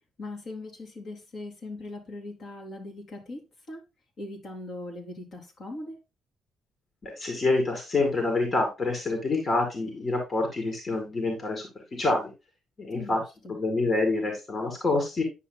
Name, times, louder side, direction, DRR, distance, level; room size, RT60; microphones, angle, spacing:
voice 1, 0.2-3.8 4.2-6.0 12.9-13.5, left 2 dB, 60° left, 2.8 m, -40 dB
voice 2, 7.0-12.3 12.8-13.2 13.5-15.2, left 2 dB, 35° left, 2.3 m, -27 dB
9.8 x 5.9 x 2.2 m
cardioid pair, 90°, 0 cm